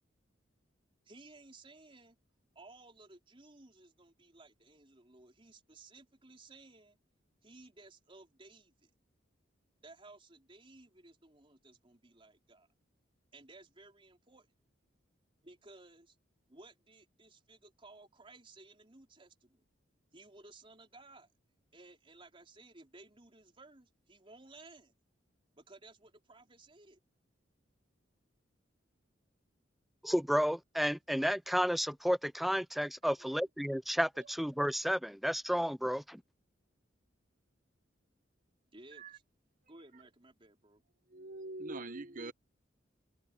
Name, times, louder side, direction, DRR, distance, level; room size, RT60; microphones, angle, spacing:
voice 1, 1.1-2.2 2.6-7.0 7.4-8.9 9.8-12.7 13.3-14.5 15.4-16.2 16.5-19.6 20.1-21.3 21.7-24.9 25.6-27.0 38.7-39.2 39.7-40.8, right 2 dB, 30° right, 3.9 m, -57 dB
voice 2, 30.0-36.2, equal, ahead, 0.3 m, -32 dB
voice 3, 41.1-42.3, right 2 dB, 45° right, 0.9 m, -43 dB
head